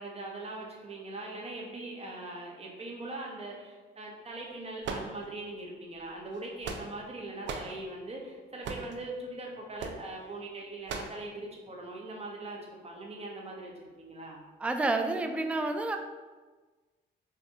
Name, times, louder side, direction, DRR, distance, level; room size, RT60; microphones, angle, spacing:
voice 1, 0.0-14.5, right 2 dB, 30° right, -2 dB, 1.0 m, -41 dB
sound 1, 4.8-5.6 6.3-7.1 7.4-7.8 8.6-9.0 9.8-10.0 10.9-11.2, right 5 dB, 70° right, 0.5 m, -37 dB
voice 2, 14.6-16.0, right 2 dB, 5° right, 5 dB, 0.3 m, -29 dB
5.7 x 2.5 x 2.8 m, 1.3 s
cardioid pair, 90°, 20 cm